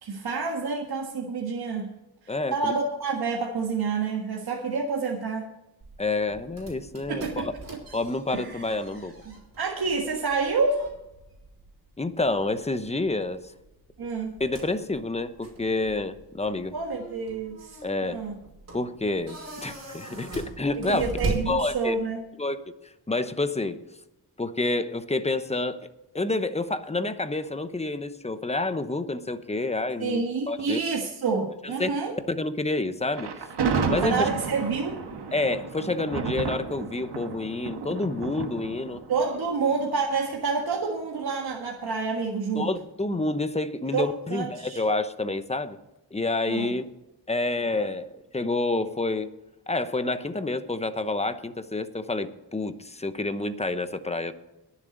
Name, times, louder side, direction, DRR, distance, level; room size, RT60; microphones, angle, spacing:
voice 1, 0.0-1.9 2.2-5.5 7.1-7.8 8.3-8.6 9.3-10.9 14.0-14.3 16.7-18.4 20.8-22.2 30.0-32.1 34.0-35.0 39.1-42.7 43.9-44.8 46.5-46.8, right 4 dB, 70° right, 1 dB, 1.6 m, -28 dB
voice 2, 2.3-2.7 6.0-7.5 7.9-9.1 12.0-13.5 14.4-16.7 17.8-18.2 18.7-21.1 21.5-21.9 22.4-23.8 24.4-25.9 26.1-30.8 31.8-31.9 32.3-33.3 33.8-34.3 35.3-39.0 42.5-45.8 46.1-46.8 47.3-49.3 49.7-54.3, left 2 dB, 15° left, 10 dB, 1.0 m, -28 dB
sound 1, 5.8-22.2, right 3 dB, 40° right, 5.5 m, -40 dB
Thunder, 33.1-40.3, right 5 dB, 85° right, 1.6 m, -31 dB
22.0 x 7.4 x 4.0 m, 0.95 s
wide cardioid pair, 90°, 39 cm